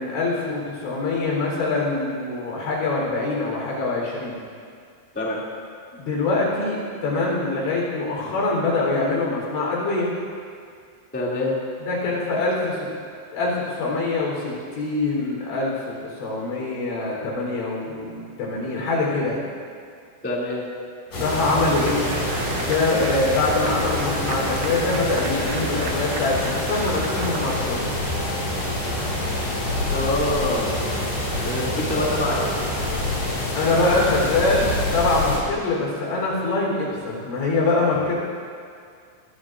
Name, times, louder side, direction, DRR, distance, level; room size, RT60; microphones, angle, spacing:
voice 1, 0.0-4.4 5.9-10.1 11.9-12.9 13.3-19.5 21.1-22.1 22.5-27.8 33.5-38.1, left 3 dB, 75° left, -3 dB, 6.2 m, -24 dB
voice 2, 11.1-11.5 20.2-20.6 29.9-30.7 31.4-32.5, left 1 dB, 5° left, -5 dB, 0.9 m, -25 dB
sound 1, 21.1-35.4, left 1 dB, 45° left, 6.3 m, -26 dB
sound 2, 21.4-28.1, right 4 dB, 75° right, 2.1 m, -36 dB
22.0 x 20.0 x 2.6 m, 2.2 s
omnidirectional pair, 5.3 m